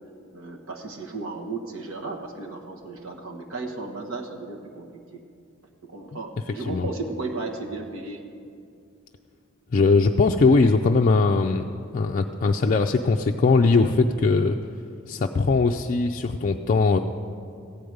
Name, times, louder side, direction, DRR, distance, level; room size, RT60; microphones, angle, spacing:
voice 1, 0.3-5.2 5.8-8.2, right 3 dB, 75° right, 2 dB, 1.4 m, -35 dB
voice 2, 9.7-11.6 11.9-14.6 15.1-17.0, left 3 dB, 40° left, 3 dB, 0.4 m, -20 dB
15.0 x 5.0 x 9.4 m, 2.4 s
head